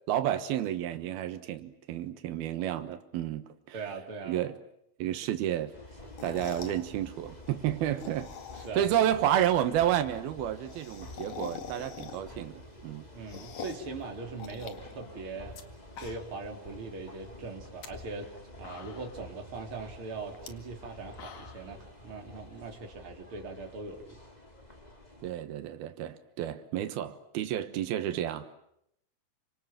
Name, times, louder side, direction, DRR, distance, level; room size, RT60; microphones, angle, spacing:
voice 1, 0.1-3.5 4.2-4.6 5.0-5.8 6.2-8.3 8.8-13.1 25.2-28.6, right 11 dB, 90° right, 3.2 m, -30 dB
voice 2, 3.7-4.4 8.6-8.9 13.1-15.6 16.0-18.3 18.6-24.2 26.8-26.9, right 3 dB, 35° right, 4.2 m, -41 dB
sound 1, 5.7-25.3, left 1 dB, 10° left, 3.2 m, -49 dB
sound 2, 6.0-6.8 7.8-8.9 9.3-9.4 9.6-9.7 9.9-10.0 10.2-12.5 12.8-13.9 14.4-15.6 15.9-16.5 16.8-16.9 17.6-17.9 18.4-18.5 18.6-19.3 20.3-20.5 20.9-21.7, left 8 dB, 50° left, 3.0 m, -45 dB
30.0 x 26.5 x 7.6 m
omnidirectional pair, 4.3 m